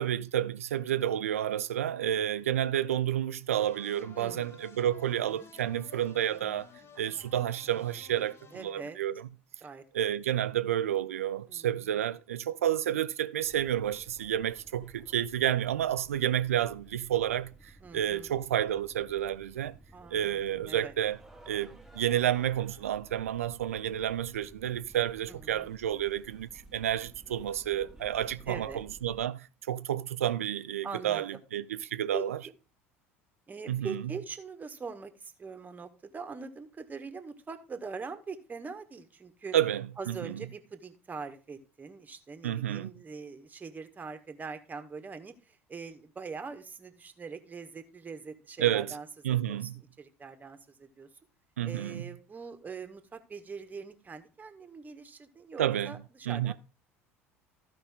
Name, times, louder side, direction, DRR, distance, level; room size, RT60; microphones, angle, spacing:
voice 1, 0.0-6.7 7.0-9.1 9.9-19.8 20.1-21.2 21.5-21.7 21.9-32.4 33.7-34.0 39.5-40.4 42.4-42.9 48.6-49.0 49.2-49.8 51.6-52.0 55.6-56.0 56.3-56.5, right 11 dB, 75° right, 0.5 m, -30 dB
sound 1, 3.5-8.7, left 5 dB, 35° left, 1.6 m, -53 dB
voice 2, 4.1-4.5 8.5-9.0 9.6-9.8 11.5-11.7 17.8-18.3 19.9-20.9 25.3-25.7 28.5-28.8 30.8-31.4 32.1-32.5 33.5-39.5 40.0-51.1 51.6-56.5, right 5 dB, 20° right, 1.5 m, -43 dB
sound 2, 13.4-29.2, right 2 dB, 5° right, 1.5 m, -54 dB
14.5 x 5.4 x 3.6 m
figure-of-eight pair, 70°, 8 cm